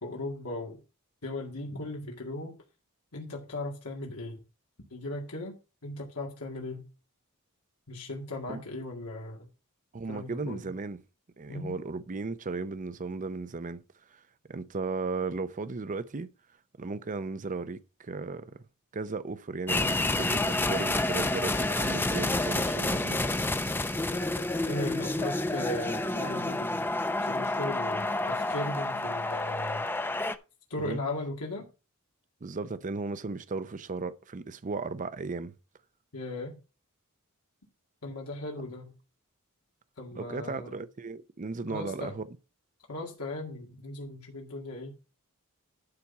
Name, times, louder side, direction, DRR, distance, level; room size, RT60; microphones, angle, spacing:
voice 1, 0.0-0.8 1.2-2.5 3.1-4.4 4.9-5.5 5.8-6.9 7.9-9.5 10.1-10.7 11.5-11.8 24.7-26.9 27.2-29.8 30.7-31.7 36.1-36.6 38.0-38.9 40.0-40.8 41.7-42.2 42.9-44.9, left 2 dB, 90° left, 2.1 m, -37 dB
voice 2, 9.9-11.0 11.4-13.8 14.1-14.2 14.5-16.3 16.8-18.6 18.9-23.2 30.8-31.0 32.4-35.5 40.2-42.3, right 4 dB, 35° right, 0.6 m, -35 dB
sound 1, 19.7-30.4, left 2 dB, 10° left, 0.5 m, -29 dB
12.0 x 4.2 x 5.8 m
head